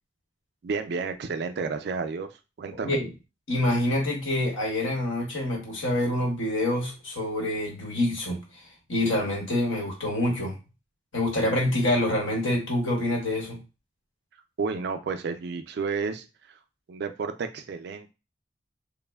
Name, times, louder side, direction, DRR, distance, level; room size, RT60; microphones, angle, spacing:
voice 1, 0.6-3.0 14.6-16.3 16.9-18.1, right 4 dB, 55° right, 8 dB, 0.3 m, -31 dB
voice 2, 3.5-8.4 8.9-10.5 11.1-13.6, left 1 dB, 75° left, -1 dB, 1.1 m, -26 dB
3.1 x 2.0 x 2.2 m, 0.29 s
head